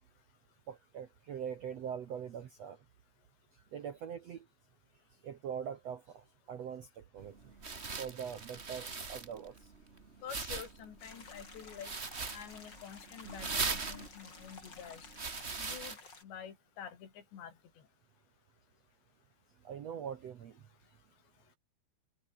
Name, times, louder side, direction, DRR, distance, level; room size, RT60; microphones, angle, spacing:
voice 1, 0.7-2.8 3.5-4.5 5.2-7.5 8.0-9.7 19.6-20.6, right 8 dB, 65° right, 1.6 m, -43 dB
sound 1, 7.2-16.0, right 4 dB, 85° right, 0.6 m, -41 dB
voice 2, 10.2-11.9 12.3-15.1 15.6-16.0 16.2-17.5, left 8 dB, 85° left, 5.7 m, -48 dB
sound 2, 11.0-16.2, left 4 dB, 25° left, 3.9 m, -53 dB
omnidirectional pair, 4.9 m